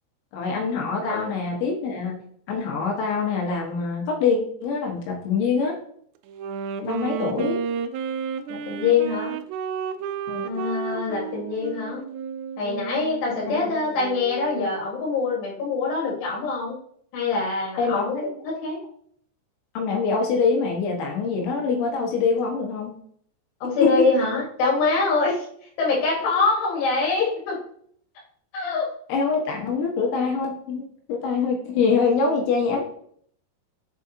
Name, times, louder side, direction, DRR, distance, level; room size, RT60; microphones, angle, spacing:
voice 1, 0.3-2.2 2.5-5.8 6.8-7.6 10.3-10.5 13.3-13.6 17.8-18.3 19.8-22.9 24.0-24.1 29.1-30.8 31.1-32.8, left 5 dB, 90° left, 0 dB, 3.6 m, -24 dB
voice 2, 1.0-1.3 8.5-9.4 10.4-12.0 12.6-16.8 17.1-18.8 23.6-25.5 25.8-27.6 28.5-28.9, left 4 dB, 75° left, -3 dB, 3.7 m, -24 dB
Wind instrument woodwind instrument, 6.3-15.0, right 7 dB, 85° right, 2.7 m, -32 dB
7.2 x 4.8 x 2.8 m, 0.62 s
omnidirectional pair, 5.1 m